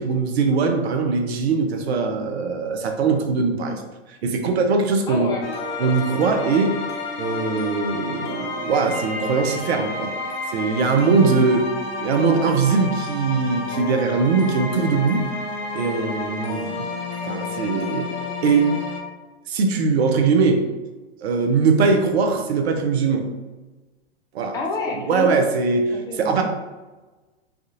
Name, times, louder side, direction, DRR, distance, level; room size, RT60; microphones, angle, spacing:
voice 1, 0.0-3.8 4.1-5.3 5.8-6.8 7.2-10.1 10.5-11.7 12.0-15.3 15.7-16.9 17.2-18.1 18.4-18.7 19.5-20.6 21.2-23.3 24.3-24.5 25.1-26.4, right 4 dB, 70° right, 4 dB, 0.7 m, -21 dB
voice 2, 5.1-5.4 11.2-11.5 24.5-25.4 25.9-26.4, left 3 dB, 10° left, 0 dB, 0.3 m, -28 dB
sound 1, 5.4-19.0, left 3 dB, 45° left, 0.7 m, -30 dB
3.5 x 2.3 x 2.8 m, 1.2 s
hypercardioid pair, 115°, 33 cm